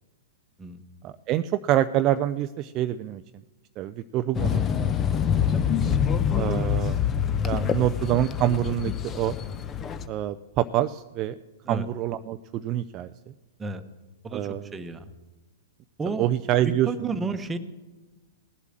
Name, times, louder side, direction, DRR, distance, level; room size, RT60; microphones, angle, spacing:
voice 1, 1.0-3.2 3.8-4.7 6.3-6.9 7.4-9.3 10.1-11.3 11.7-13.1 14.3-14.7 16.2-17.2, right 13 dB, 35° right, 10 dB, 0.5 m, -26 dB
sound 1, 4.3-10.1, left 8 dB, 25° left, 0.9 m, -25 dB
voice 2, 14.2-15.1 16.0-16.3 16.6-17.6, right 3 dB, 15° right, 9 dB, 1.2 m, -32 dB
18.0 x 8.2 x 7.5 m, 1.2 s
hypercardioid pair, 115°, 0 cm